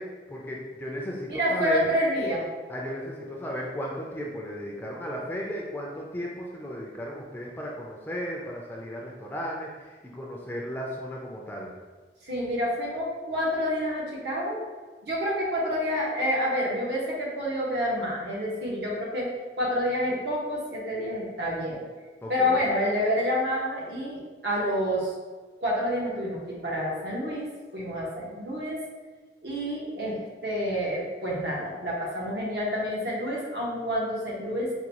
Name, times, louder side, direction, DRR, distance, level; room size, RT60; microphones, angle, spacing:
voice 1, 0.0-1.9 2.7-11.7 22.2-22.6, equal, 10° left, -2 dB, 0.3 m, -35 dB
voice 2, 1.3-2.5 12.2-14.6 15.0-19.3 19.6-21.8 22.3-25.1 25.6-27.5 27.7-28.8 29.4-34.7, equal, 75° right, -4 dB, 1.0 m, -28 dB
4.7 x 2.2 x 2.9 m, 1.4 s
head